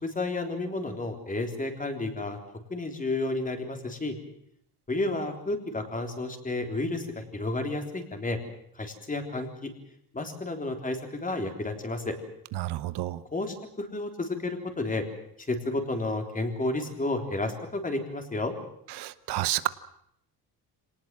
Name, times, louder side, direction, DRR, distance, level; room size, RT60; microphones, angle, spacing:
voice 1, 0.0-2.4 2.7-4.2 4.9-8.4 8.8-9.7 10.1-12.1 13.3-15.0 15.4-18.5, left 2 dB, 20° left, 5 dB, 3.6 m, -31 dB
voice 2, 12.6-13.2 19.0-19.7, right 15 dB, 90° right, 14 dB, 1.1 m, -29 dB
26.0 x 19.0 x 7.6 m, 0.71 s
cardioid pair, 135°, 39 cm